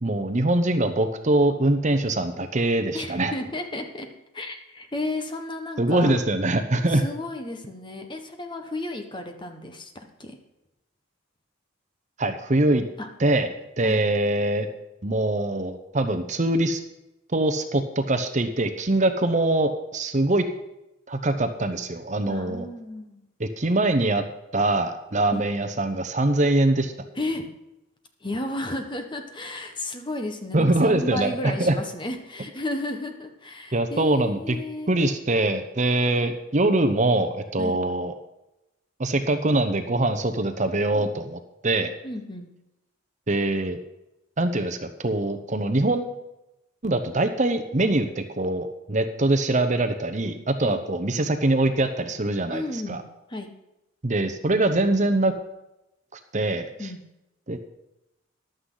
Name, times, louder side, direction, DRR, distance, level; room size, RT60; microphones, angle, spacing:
voice 1, 0.0-3.3 5.8-7.0 12.2-12.8 13.2-13.5 13.8-14.7 15.0-16.8 17.3-20.4 21.1-22.6 23.4-24.2 24.5-26.9 30.5-31.8 33.7-34.6 34.9-38.1 39.0-41.9 43.3-43.8 44.4-46.2 46.8-53.0 54.0-55.3 56.3-56.7 57.5-57.6, right 2 dB, 35° right, 8 dB, 0.9 m, -23 dB
voice 2, 2.9-6.1 6.9-10.4 13.0-13.1 13.8-14.0 22.3-23.2 25.3-25.4 27.1-27.5 28.2-35.1 37.6-37.8 40.9-41.1 42.0-42.5 50.6-50.8 52.5-53.0 53.3-53.5 56.8-57.0, left 2 dB, 25° left, 5 dB, 1.3 m, -33 dB
14.5 x 11.5 x 4.0 m, 0.91 s
head